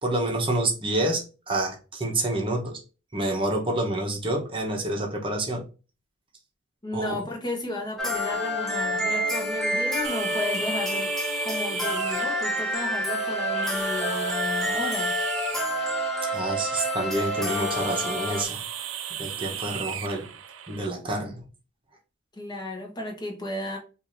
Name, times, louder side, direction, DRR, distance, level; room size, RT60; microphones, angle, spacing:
voice 1, 0.0-2.8 3.1-5.6 6.9-7.2 16.3-18.6 19.2-20.3 20.7-21.4, right 1 dB, 25° right, 0.9 m, -28 dB
voice 2, 6.8-11.1 11.4-15.2 22.3-23.8, left 1 dB, 20° left, 0.9 m, -33 dB
sound 1, 8.0-18.4, equal, ahead, 0.5 m, -28 dB
sound 2, 10.0-20.9, right 9 dB, 85° right, 0.5 m, -37 dB
4.7 x 2.6 x 2.6 m
head